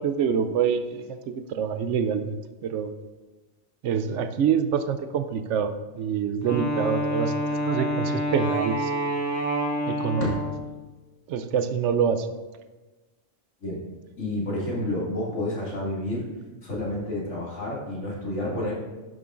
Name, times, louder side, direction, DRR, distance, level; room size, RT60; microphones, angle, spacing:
voice 1, 0.0-2.9 3.8-9.1 9.9-10.4 11.3-12.3, right 7 dB, 80° right, 10 dB, 0.9 m, -26 dB
Wind instrument woodwind instrument, 6.4-10.7, equal, 15° left, 1.2 m, -27 dB
voice 2, 14.1-16.3 16.6-18.7, left 1 dB, 80° left, -6 dB, 2.6 m, -30 dB
10.5 x 6.8 x 2.5 m, 1.2 s
omnidirectional pair, 1.2 m